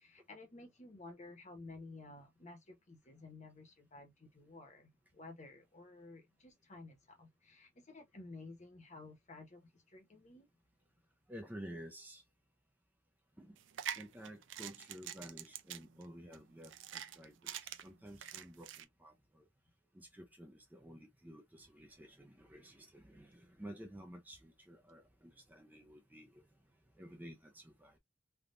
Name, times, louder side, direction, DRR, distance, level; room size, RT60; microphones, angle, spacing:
voice 1, 0.0-10.5 13.5-13.6, left 3 dB, 35° left, 1.0 m, -54 dB
voice 2, 11.3-12.2 13.4-13.6 14.0-19.5 19.9-26.4 27.0-28.0, equal, 10° right, 0.5 m, -52 dB
sound 1, 13.6-18.8, right 10 dB, 65° right, 0.4 m, -46 dB
3.4 x 2.4 x 2.5 m
head